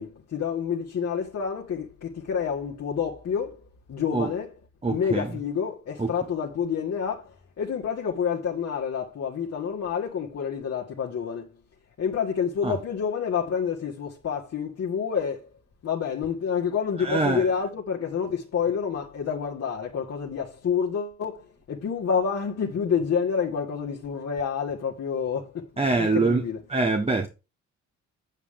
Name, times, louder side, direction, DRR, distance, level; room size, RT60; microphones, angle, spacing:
voice 1, 0.0-4.5 4.8-11.5 12.0-15.5 15.8-26.6, left 7 dB, 55° left, 1.9 m, -28 dB
voice 2, 4.8-5.3 6.0-6.1 12.6-12.7 17.0-17.4 25.8-26.4 26.7-27.3, right 3 dB, 20° right, 1.3 m, -24 dB
8.3 x 8.2 x 3.7 m
cardioid pair, 90°, 30 cm